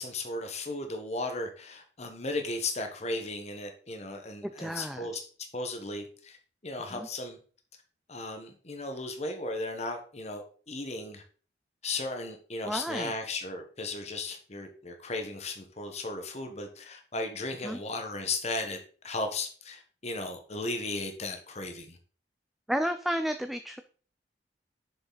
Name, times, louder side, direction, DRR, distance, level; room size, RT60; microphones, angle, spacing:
voice 1, 0.0-5.2 5.5-6.4 6.6-7.4 8.1-11.2 11.8-18.8 19.0-22.0, left 2 dB, 40° left, 5 dB, 1.2 m, -35 dB
voice 2, 4.4-5.2 6.9-7.1 12.7-13.1 17.6-17.8 22.7-23.8, equal, ahead, 8 dB, 0.4 m, -32 dB
7.0 x 6.8 x 4.0 m, 0.41 s
head